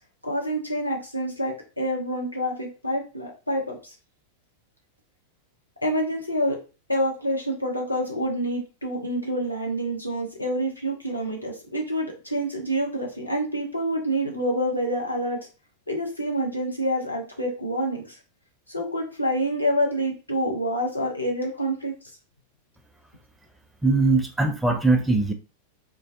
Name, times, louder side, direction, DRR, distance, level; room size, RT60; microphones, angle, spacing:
voice 1, 0.2-3.9 5.8-6.6 6.9-15.4 15.9-18.2 18.7-21.9, equal, 85° left, 0 dB, 0.7 m, -27 dB
voice 2, 23.8-25.3, right 3 dB, 5° right, 5 dB, 0.4 m, -21 dB
2.3 x 2.2 x 2.5 m, 0.33 s
figure-of-eight pair, 90°, 0 cm